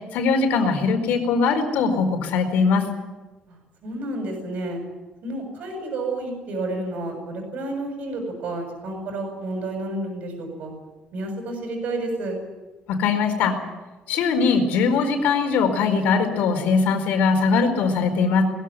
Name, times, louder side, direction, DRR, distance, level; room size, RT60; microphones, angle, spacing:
voice 1, 0.1-2.8 12.9-13.6 14.1-18.4, left 5 dB, 90° left, 6 dB, 4.6 m, -21 dB
voice 2, 3.5-4.8 5.2-10.7 11.1-12.4, right 2 dB, 65° right, 1 dB, 7.1 m, -30 dB
21.5 x 16.0 x 9.7 m, 1.2 s
cardioid pair, 140°, 3 cm